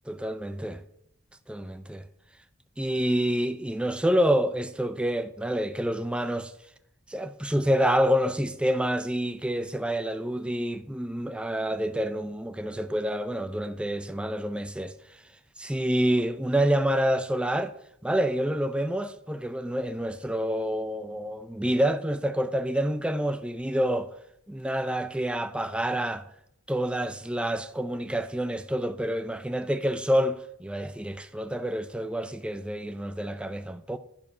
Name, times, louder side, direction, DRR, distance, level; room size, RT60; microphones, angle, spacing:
voice 1, 0.1-0.8 1.5-2.0 2.8-6.5 7.1-14.9 15.6-17.7 18.0-24.1 24.5-26.3 26.7-34.0, equal, 5° right, 0.4 m, -27 dB
10.5 x 4.8 x 5.5 m
head